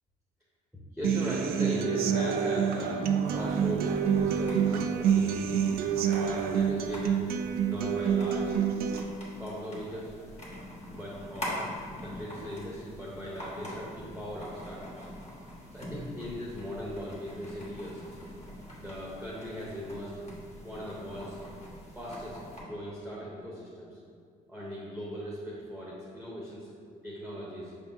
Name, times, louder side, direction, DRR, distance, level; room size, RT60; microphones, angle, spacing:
voice 1, 0.7-5.4 6.1-7.2 7.6-8.6 9.4-10.1 10.9-15.1 15.7-18.0 18.8-20.2 20.6-21.4 21.9-24.0 24.5-26.7 27.0-27.7, equal, ahead, -6 dB, 1.0 m, -38 dB
Human voice / Acoustic guitar, 1.0-9.0, right 7 dB, 60° right, 0.4 m, -27 dB
sound 1, 3.3-22.6, equal, 40° left, 1.2 m, -44 dB
5.4 x 3.5 x 2.8 m, 2.2 s
supercardioid pair, 70°, 17 cm